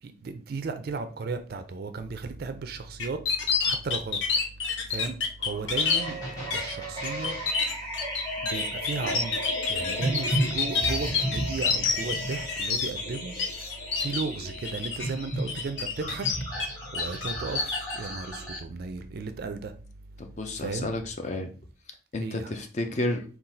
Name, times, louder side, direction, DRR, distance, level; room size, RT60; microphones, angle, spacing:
voice 1, 0.0-3.3 3.6-6.3 6.5-7.5 8.4-16.6 16.9-19.7 20.6-20.9 22.2-22.5, right 4 dB, 50° right, 0.4 m, -35 dB
sound 1, 3.0-6.0 6.5-6.7 7.0-13.4 13.7-14.2 14.6-15.1 15.5-16.7 16.9-18.0, left 5 dB, 75° left, 0.7 m, -27 dB
sound 2, 5.4-8.4 9.0-12.9 13.3-14.2, equal, 55° left, 1.8 m, -41 dB
sound 3, 5.8-18.6, equal, 20° left, 1.3 m, -34 dB
voice 2, 20.2-21.5 22.1-23.2, left 2 dB, 35° left, 0.5 m, -31 dB
3.8 x 2.4 x 4.1 m
head